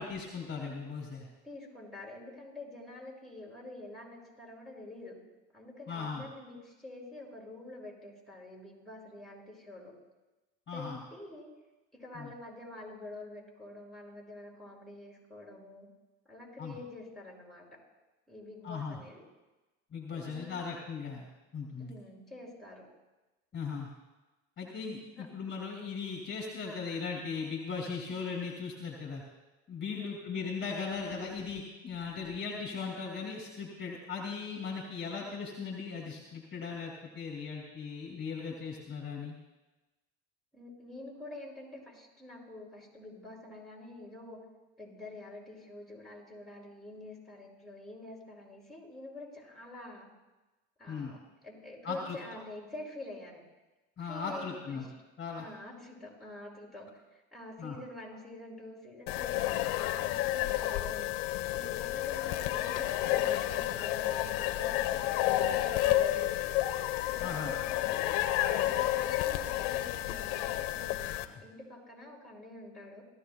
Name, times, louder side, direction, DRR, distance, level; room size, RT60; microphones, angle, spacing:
voice 1, 0.0-1.3 5.9-6.2 10.7-11.0 12.1-12.3 16.6-16.7 18.6-19.0 19.9-21.3 21.5-21.9 23.5-23.9 24.6-29.2 29.7-39.4 50.9-51.1 51.8-52.2 54.0-54.8 55.2-55.5 57.6-57.8 67.2-67.5, left 5 dB, 35° left, 0 dB, 2.6 m, -38 dB
voice 2, 1.4-5.2 5.5-9.9 10.7-11.5 11.9-15.9 16.3-17.7 18.3-19.2 20.1-20.6 21.8-22.9 25.2-25.3 29.9-30.3 40.5-44.4 44.8-50.1 50.8-53.4 54.0-54.9 55.4-61.2 61.5-66.8 67.1-68.2 68.6-73.0, left 2 dB, ahead, -3 dB, 6.1 m, -47 dB
sound 1, 59.1-71.2, left 14 dB, 75° left, 1.0 m, -31 dB
26.0 x 15.0 x 2.3 m, 1.1 s
supercardioid pair, 85°, 34 cm